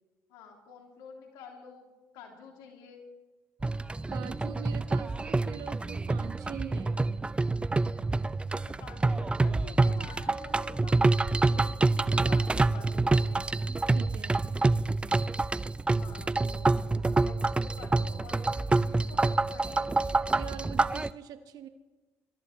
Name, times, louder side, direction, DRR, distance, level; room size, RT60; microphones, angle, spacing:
voice 1, 0.3-1.9 2.1-3.1 8.7-13.3 15.9-20.1, left 5 dB, 80° left, 2 dB, 2.8 m, -49 dB
sound 1, 3.6-21.1, right 3 dB, 15° right, 0.5 m, -27 dB
voice 2, 4.1-7.1 13.9-14.4 20.3-21.7, right 9 dB, 65° right, 9 dB, 1.3 m, -43 dB
26.0 x 14.0 x 3.2 m, 1.2 s
supercardioid pair, 70°, 7 cm